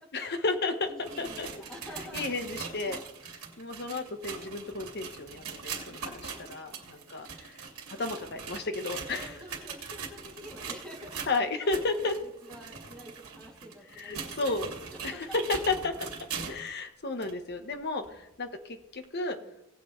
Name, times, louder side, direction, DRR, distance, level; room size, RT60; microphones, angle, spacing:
voice 1, 0.1-1.5 2.1-3.0 3.6-7.6 7.9-9.4 11.3-12.1 14.0-14.7 15.0-16.1 16.5-19.4, left 3 dB, 50° left, 6 dB, 1.2 m, -33 dB
sound 1, 0.8-16.7 17.2-17.3 18.0-18.1 19.0-19.1, right 6 dB, 85° right, 2.5 m, -41 dB
voice 2, 0.9-2.2 2.9-3.1 6.6-6.9 9.2-11.2 11.6-14.5 14.9-15.2 17.7-17.8 18.1-18.2 19.4-19.5, equal, 5° left, -2 dB, 2.7 m, -48 dB
18.0 x 8.5 x 3.3 m, 0.96 s
head